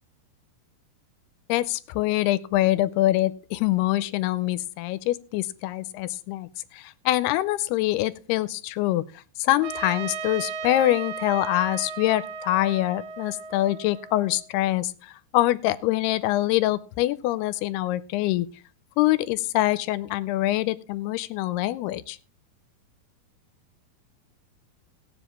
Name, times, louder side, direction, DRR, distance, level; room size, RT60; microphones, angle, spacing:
voice 1, 1.5-6.5 6.7-9.0 9.4-18.5 19.0-22.2, left 16 dB, 90° left, 15 dB, 2.7 m, -24 dB
Trumpet, 9.6-14.5, right 6 dB, 90° right, 1.7 m, -36 dB
19.0 x 7.6 x 2.9 m, 0.35 s
omnidirectional pair, 4.5 m